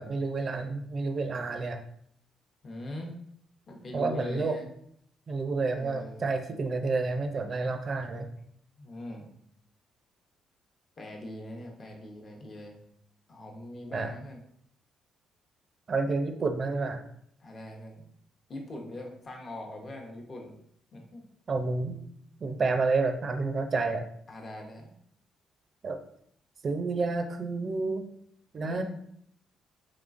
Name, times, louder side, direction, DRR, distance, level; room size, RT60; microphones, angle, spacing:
voice 1, 0.0-1.8 3.9-4.6 5.3-8.3 13.9-14.1 15.9-17.0 21.5-22.0 22.4-24.1 25.8-26.0 26.6-28.0 28.5-28.8, right 3 dB, 45° right, 6 dB, 0.4 m, -29 dB
voice 2, 2.6-3.1 3.7-4.7 5.8-6.2 8.8-9.3 11.0-12.8 13.3-14.4 17.4-18.0 18.5-20.5 20.9-21.2 24.3-24.9 28.6-28.8, left 1 dB, 40° left, 1 dB, 0.8 m, -41 dB
3.6 x 3.1 x 2.5 m, 0.69 s
cardioid pair, 90°, 0 cm